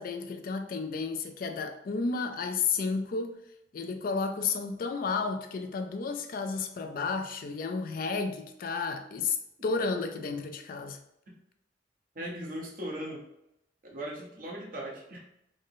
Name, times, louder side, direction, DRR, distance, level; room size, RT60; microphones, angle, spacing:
voice 1, 0.0-3.4 3.7-9.4 9.6-11.0, left 4 dB, 50° left, 6 dB, 0.4 m, -32 dB
voice 2, 12.1-13.2 13.8-15.2, right 1 dB, 50° right, -2 dB, 1.0 m, -38 dB
3.8 x 2.1 x 3.8 m, 0.80 s
head